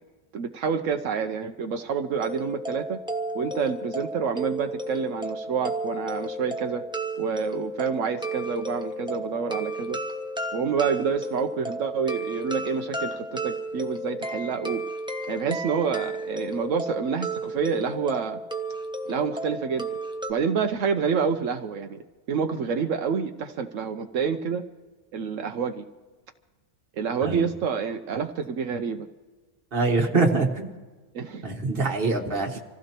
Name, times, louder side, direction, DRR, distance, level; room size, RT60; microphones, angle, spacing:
voice 1, 0.3-3.0 3.3-6.8 7.2-10.0 10.5-14.8 15.3-18.4 19.1-19.9 20.3-22.0 22.3-24.6 25.1-25.8 26.9-29.1 31.1-31.5, right 6 dB, 85° right, 6 dB, 1.1 m, -28 dB
sound 1, 2.1-20.3, right 1 dB, 5° right, 0.8 m, -33 dB
voice 2, 29.7-30.7 31.4-32.6, right 3 dB, 50° right, 2 dB, 1.7 m, -24 dB
26.5 x 15.5 x 3.0 m, 1.3 s
omnidirectional pair, 1.3 m